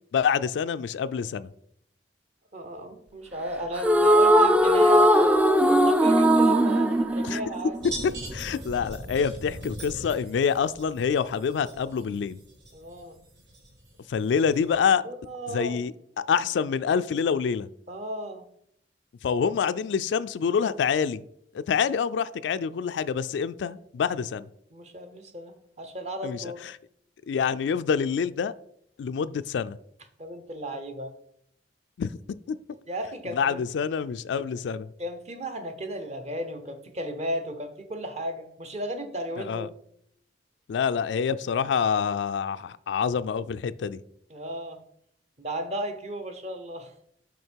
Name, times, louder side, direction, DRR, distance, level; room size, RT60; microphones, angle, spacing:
voice 1, 0.1-1.5 7.2-7.4 8.0-12.4 14.1-15.0 15.5-17.7 19.2-21.2 21.5-24.5 26.2-26.4 27.3-28.5 29.0-29.8 32.0-32.1 32.5-32.6 33.3-34.9 39.4-39.7 40.7-44.0, left 6 dB, 75° left, 14 dB, 0.3 m, -26 dB
voice 2, 2.5-7.8 12.7-13.2 15.0-15.9 17.9-18.4 24.7-26.6 30.2-31.1 32.9-33.6 35.0-39.7 44.3-44.8 45.4-46.9, equal, 40° right, 8 dB, 0.9 m, -35 dB
sound 1, 3.8-8.2, equal, 5° right, 0.3 m, -19 dB
sound 2, 7.8-14.8, right 1 dB, 65° right, 2.5 m, -41 dB
6.4 x 5.2 x 4.5 m, 0.72 s
head